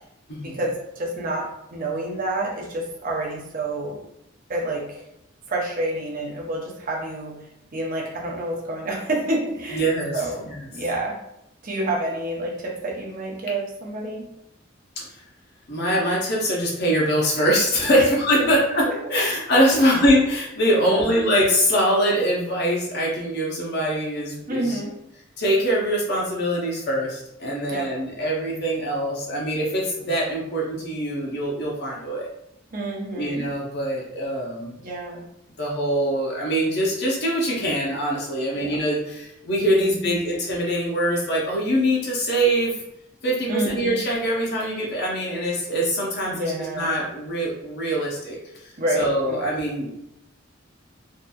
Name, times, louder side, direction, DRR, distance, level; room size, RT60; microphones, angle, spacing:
voice 1, 0.4-4.0 4.5-5.0 5.5-7.4 7.7-9.9 10.1-11.2 11.6-14.2 17.9-18.1 18.3-18.5 18.9-19.2 19.7-19.9 20.8-21.2 24.5-25.0 27.7-27.9 32.7-33.5 34.8-35.3 38.5-38.8 39.7-40.3 43.5-44.0 46.3-47.0 48.8-49.5, right 1 dB, 45° right, -1 dB, 0.6 m, -28 dB
voice 2, 9.7-10.2 10.5-10.6 15.0-15.2 15.7-24.8 25.4-32.3 33.1-34.7 35.6-42.7 43.2-49.9, equal, 55° left, -3 dB, 0.6 m, -23 dB
2.7 x 2.4 x 2.2 m, 0.83 s
head